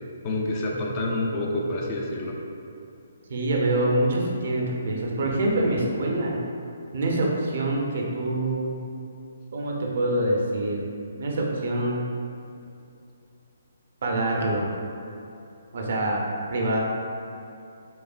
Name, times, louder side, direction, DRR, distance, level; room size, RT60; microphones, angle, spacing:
voice 1, 0.2-2.4, left 1 dB, 30° left, -1 dB, 0.4 m, -28 dB
voice 2, 3.3-6.4 6.9-8.8 9.5-10.8 11.2-12.0 14.0-14.6 15.7-16.2 16.5-16.8, right 1 dB, 55° right, -1 dB, 0.6 m, -25 dB
5.4 x 2.1 x 2.4 m, 2.7 s
figure-of-eight pair, 135°, 0 cm